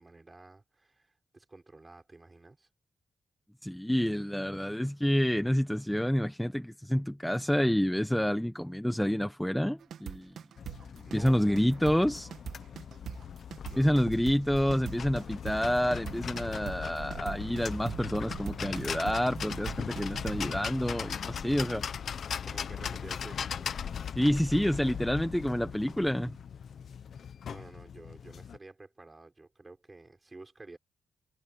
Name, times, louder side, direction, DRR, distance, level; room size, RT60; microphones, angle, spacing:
voice 1, 0.0-2.7 10.5-10.8 11.0-12.0 13.3-14.5 22.4-23.6 27.1-30.8, right 2 dB, 20° right, 6.3 m, -52 dB
voice 2, 3.6-10.3 11.1-12.3 13.8-21.8 24.2-26.4, equal, 5° left, 1.1 m, -28 dB
sound 1, 9.8-20.5, right 9 dB, 80° right, 2.1 m, -42 dB
sound 2, 10.6-28.6, left 7 dB, 60° left, 1.0 m, -39 dB
wide cardioid pair, 120°, 0 cm